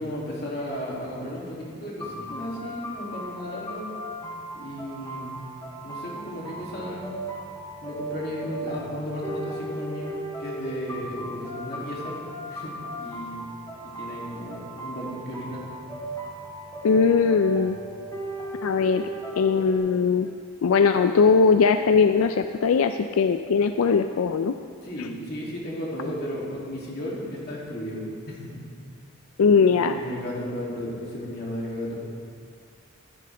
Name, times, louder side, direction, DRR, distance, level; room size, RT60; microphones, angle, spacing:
voice 1, 0.0-3.8 4.5-5.4 5.8-7.1 7.8-12.2 12.5-13.4 13.8-15.7 24.8-28.6 29.6-32.0, equal, 45° left, -5 dB, 2.6 m, -34 dB
sound 1, 2.0-19.8, right 1 dB, 15° left, 2.6 m, -37 dB
voice 2, 16.8-17.8 18.6-19.1 19.4-20.3 20.6-24.5 25.0-25.1 29.4-30.0, left 5 dB, 85° left, 8 dB, 0.4 m, -20 dB
13.5 x 11.0 x 3.4 m, 2.2 s
head